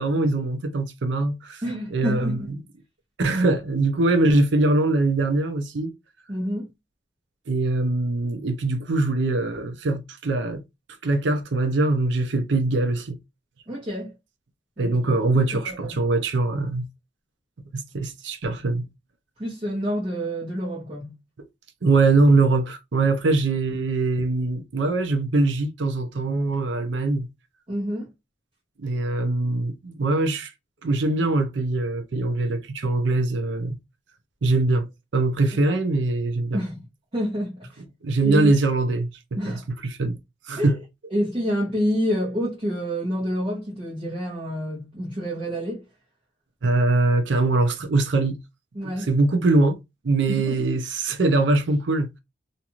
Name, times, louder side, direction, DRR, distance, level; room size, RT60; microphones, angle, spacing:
voice 1, 0.0-1.6 1.9-2.4 3.2-5.9 7.5-10.6 11.0-13.2 14.8-16.9 17.7-18.9 21.8-27.3 28.8-30.5 30.8-33.8 34.4-36.6 38.0-39.1 39.5-40.2 40.5-40.7 46.6-48.4 48.8-49.8 50.0-52.1, right 2 dB, 65° right, 0.5 m, -22 dB
voice 2, 1.6-2.5 6.3-6.7 13.7-14.1 14.8-14.9 15.3-16.0 19.4-21.1 27.7-28.1 35.6-35.8 36.5-36.9 37.1-37.8 38.2-38.5 39.4-39.6 40.6-40.8 41.1-45.8 48.7-49.1 50.3-50.6, equal, 30° right, 1.0 m, -28 dB
2.6 x 2.4 x 2.9 m
head